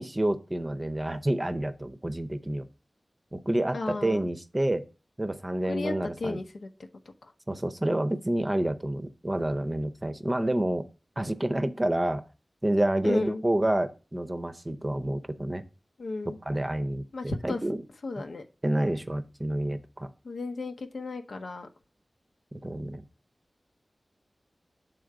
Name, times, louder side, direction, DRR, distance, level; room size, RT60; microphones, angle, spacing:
voice 1, 0.0-2.7 3.3-4.9 5.2-6.4 7.5-10.9 11.2-12.2 12.6-15.6 16.2-17.8 18.6-20.1 22.6-23.1, right 1 dB, 25° right, 10 dB, 0.6 m, -29 dB
voice 2, 3.7-4.2 5.7-6.7 7.2-7.3 13.0-13.4 16.0-16.4 17.1-17.6 18.0-18.4 20.2-21.7, left 3 dB, 90° left, 4 dB, 0.9 m, -34 dB
7.9 x 3.8 x 4.7 m, 0.32 s
wide cardioid pair, 90°, 0 cm